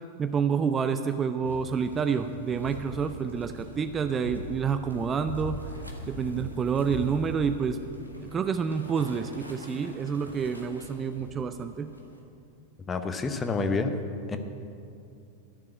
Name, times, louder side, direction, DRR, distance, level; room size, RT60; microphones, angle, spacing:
voice 1, 0.2-5.6 6.1-7.8 8.2-11.9, right 6 dB, 20° right, 9 dB, 0.5 m, -28 dB
sound 1, 1.4-12.2, equal, 90° left, 1.5 m, -42 dB
voice 2, 12.9-13.9 14.3-14.4, left 4 dB, 20° left, 7 dB, 0.9 m, -28 dB
12.5 x 7.1 x 8.6 m, 2.6 s
figure-of-eight pair, 90°, 0 cm